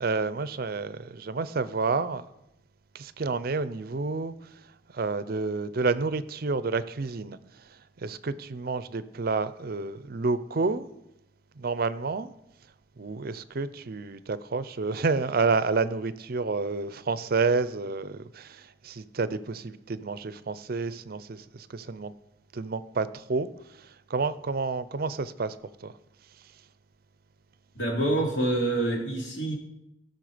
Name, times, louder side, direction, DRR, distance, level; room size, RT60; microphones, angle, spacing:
voice 1, 0.0-2.3 2.9-4.5 4.9-10.9 11.6-12.3 13.0-22.1 22.5-25.6 25.8-25.9, right 4 dB, 55° right, 0.6 m, -30 dB
voice 2, 27.7-29.5, right 1 dB, 80° left, 3.2 m, -26 dB
17.5 x 6.5 x 5.0 m
head